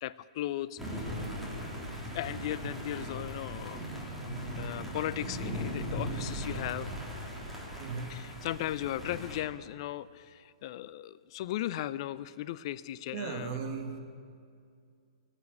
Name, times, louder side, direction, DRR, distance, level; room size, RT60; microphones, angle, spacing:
voice 1, 0.0-1.1 2.1-3.9 4.6-6.9 8.1-13.6, left 13 dB, 45° left, 17 dB, 0.5 m, -37 dB
sound 1, 0.8-9.4, equal, 5° right, 3.5 m, -38 dB
voice 2, 7.8-8.2 13.1-14.0, right 5 dB, 40° right, 4 dB, 1.8 m, -37 dB
17.5 x 8.2 x 7.7 m, 2.3 s
hypercardioid pair, 120°, 4 cm